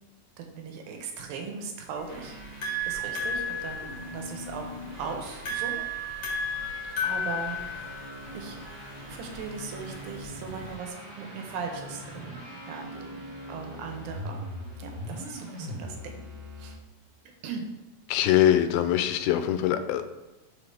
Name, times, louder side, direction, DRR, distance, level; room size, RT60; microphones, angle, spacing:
voice 1, 0.4-2.4 2.9-5.8 6.8-7.6 8.3-8.6 9.1-14.4 14.8-16.2 16.6-16.8 17.4-17.7, right 5 dB, 80° right, 3 dB, 2.5 m, -38 dB
sound 1, 2.0-10.7, left 1 dB, 45° left, 1.7 m, -34 dB
sound 2, 2.1-16.7, equal, 15° right, 1.7 m, -42 dB
voice 2, 18.1-20.0, left 11 dB, 90° left, 9 dB, 2.4 m, -23 dB
5.6 x 4.7 x 4.8 m, 1.1 s
omnidirectional pair, 4.3 m